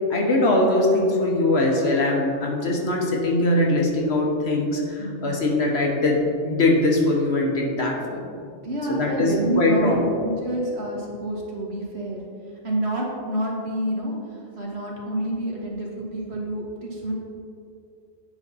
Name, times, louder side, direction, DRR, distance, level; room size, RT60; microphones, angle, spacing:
voice 1, 0.1-8.2 8.9-10.0, left 2 dB, 55° left, -1 dB, 1.2 m, -21 dB
voice 2, 5.0-5.4 8.6-17.1, right 1 dB, 55° right, -2 dB, 1.5 m, -28 dB
8.8 x 5.6 x 4.1 m, 2.4 s
omnidirectional pair, 1.4 m